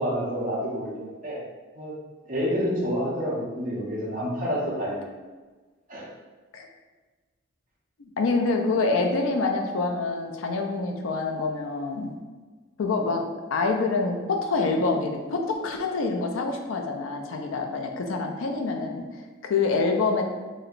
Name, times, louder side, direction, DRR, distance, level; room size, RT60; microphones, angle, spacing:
voice 1, 0.0-1.4 1.7-1.9 2.2-5.1 5.9-6.0, equal, 40° right, -7 dB, 0.9 m, -28 dB
voice 2, 8.0-12.1 12.8-13.2 13.5-20.2, left 3 dB, 80° left, 3 dB, 0.4 m, -26 dB
3.1 x 2.8 x 2.5 m, 1.3 s
head